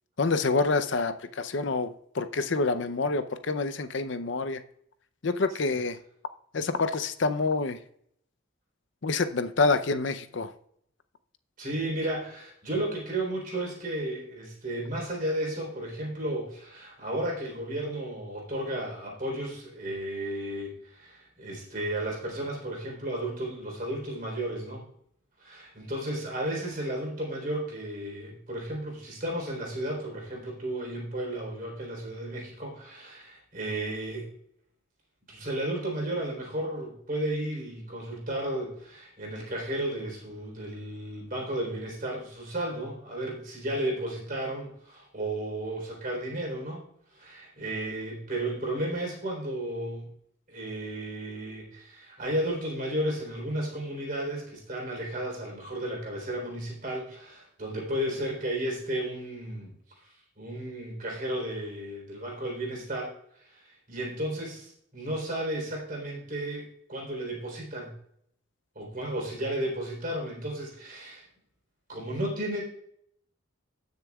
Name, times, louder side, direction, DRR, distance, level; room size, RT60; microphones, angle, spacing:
voice 1, 0.2-4.6 5.2-6.0 6.5-7.8 9.0-10.5, left 3 dB, 60° left, 11 dB, 0.6 m, -27 dB
voice 2, 11.6-24.8 25.4-34.3 35.3-46.8 47.1-50.1 50.5-59.7 60.0-63.1 63.5-66.6 66.9-68.0 68.8-71.2 71.9-72.6, right 1 dB, 40° right, -1 dB, 3.7 m, -33 dB
19.0 x 6.7 x 2.4 m, 0.70 s
head